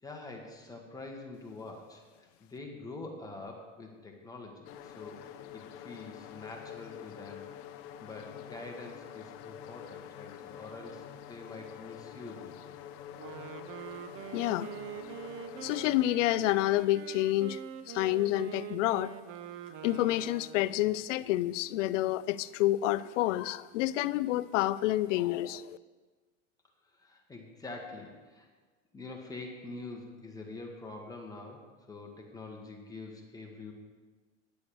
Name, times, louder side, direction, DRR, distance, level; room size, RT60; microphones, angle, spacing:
voice 1, 0.0-7.5 8.0-12.5 26.9-28.5 28.9-31.6 31.9-33.7, left 2 dB, 10° left, 1 dB, 1.3 m, -45 dB
sound 1, 4.6-16.0, left 10 dB, 40° left, 0.7 m, -47 dB
Wind instrument woodwind instrument, 13.2-21.1, right 8 dB, 40° right, 0.6 m, -44 dB
voice 2, 14.3-14.7 15.6-17.6 17.9-19.1 19.8-25.8, left 15 dB, 85° left, 16 dB, 0.5 m, -28 dB
10.0 x 7.0 x 6.8 m, 1.4 s
supercardioid pair, 145°, 36 cm